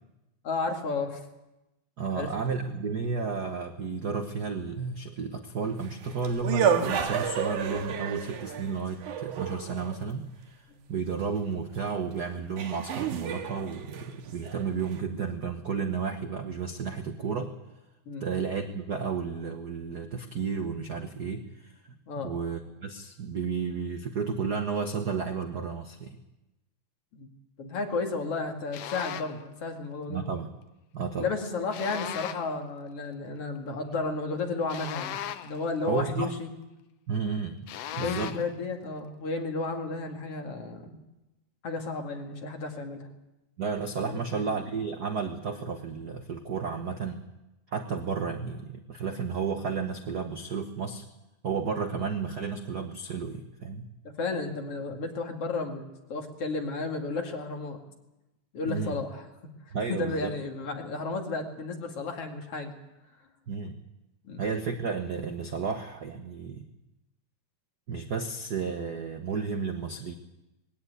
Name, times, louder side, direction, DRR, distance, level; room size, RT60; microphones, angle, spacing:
voice 1, 0.4-1.2 2.1-2.3 2.6-2.8 18.1-18.2 22.1-22.4 27.1-27.3 27.6-30.2 31.2-36.5 38.0-41.0 41.6-43.1 44.0-44.5 54.2-55.8 56.1-57.8 58.5-59.3 59.9-62.7 64.3-64.4, left 3 dB, 50° left, 3 dB, 3.2 m, -33 dB
voice 2, 2.0-10.3 10.9-17.5 18.2-26.2 30.1-30.5 30.9-31.3 35.8-36.3 37.1-37.6 37.9-38.4 43.6-47.2 47.7-51.0 51.4-53.8 58.7-59.0 59.7-60.3 63.5-63.8 64.4-66.6 67.9-70.1, right 5 dB, 65° right, 6 dB, 0.9 m, -32 dB
sound 1, 5.7-10.0 11.9-12.0 12.6-15.0, right 7 dB, 90° right, 3.0 m, -31 dB
sound 2, 28.7-29.4 31.7-32.6 34.7-35.7 37.7-38.6, left 11 dB, 65° left, 1.8 m, -37 dB
20.5 x 16.5 x 9.3 m, 0.98 s
omnidirectional pair, 3.4 m